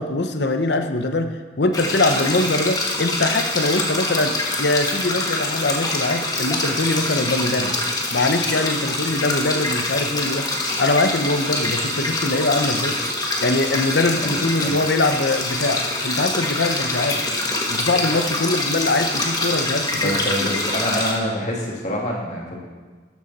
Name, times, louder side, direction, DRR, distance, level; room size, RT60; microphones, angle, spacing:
voice 1, 0.0-7.7 8.1-10.5 10.8-13.0 13.4-17.2 17.7-20.2, left 2 dB, 70° left, 7 dB, 0.9 m, -22 dB
sound 1, 1.7-21.1, left 2 dB, 20° left, 1.5 m, -25 dB
voice 2, 18.1-18.6 20.0-22.6, equal, 40° left, -3 dB, 2.5 m, -26 dB
12.5 x 12.0 x 4.2 m, 1.4 s
head